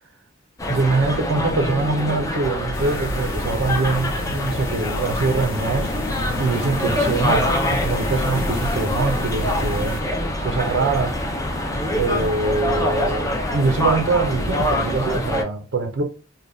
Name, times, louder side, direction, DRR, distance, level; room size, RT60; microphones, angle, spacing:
sound 1, 0.6-15.4, left 1 dB, 15° left, 0.5 m, -25 dB
voice 1, 0.7-5.9 6.4-10.0 10.4-11.2 12.0-16.0, right 3 dB, 65° right, 0.5 m, -23 dB
sound 2, 2.7-10.0, left 2 dB, 80° left, 0.5 m, -31 dB
3.3 x 2.2 x 2.6 m
head